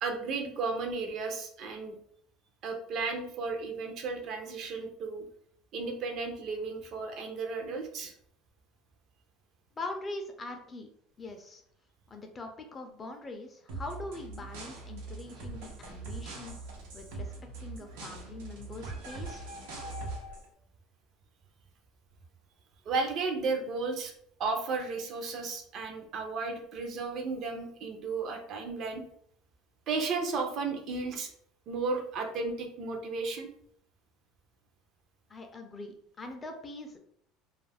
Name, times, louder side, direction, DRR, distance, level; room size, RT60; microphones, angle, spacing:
voice 1, 0.0-2.0 2.6-5.3 5.7-8.1 22.9-24.1 24.4-29.0 29.9-31.3 31.7-33.5, right 4 dB, 50° right, 4 dB, 0.5 m, -34 dB
voice 2, 9.8-10.9 11.2-11.6 12.1-17.3 17.6-19.5 35.3-37.0, left 2 dB, 20° left, 4 dB, 0.4 m, -42 dB
sound 1, 13.7-20.5, right 3 dB, 90° right, 0.7 m, -42 dB
2.4 x 2.0 x 3.3 m, 0.65 s
cardioid pair, 130°, 0 cm